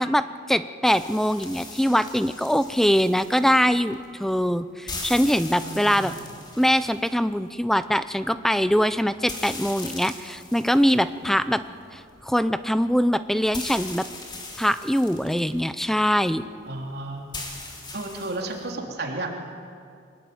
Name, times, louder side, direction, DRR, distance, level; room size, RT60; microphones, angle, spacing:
voice 1, 0.0-6.1 6.6-11.6 11.9-14.1 14.6-16.4, equal, ahead, 13 dB, 0.6 m, -23 dB
sound 1, 0.8-18.7, left 3 dB, 25° left, 3.2 m, -41 dB
voice 2, 5.6-6.2 11.2-11.4 16.7-17.5 17.9-19.3, right 2 dB, 55° right, 1 dB, 3.4 m, -33 dB
24.0 x 20.0 x 9.5 m, 2.3 s
head